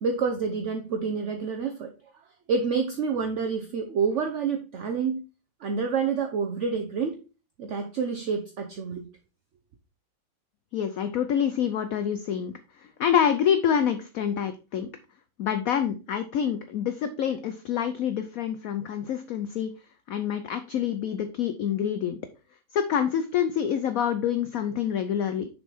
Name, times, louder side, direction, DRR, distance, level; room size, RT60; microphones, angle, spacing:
voice 1, 0.0-1.9 2.5-5.2 5.6-7.2 7.6-9.1, right 5 dB, 60° right, 5 dB, 0.8 m, -28 dB
voice 2, 10.7-14.9 15.4-19.7 20.1-22.2 22.7-25.5, left 8 dB, 70° left, 9 dB, 0.8 m, -27 dB
6.6 x 4.3 x 4.4 m, 0.33 s
omnidirectional pair, 2.0 m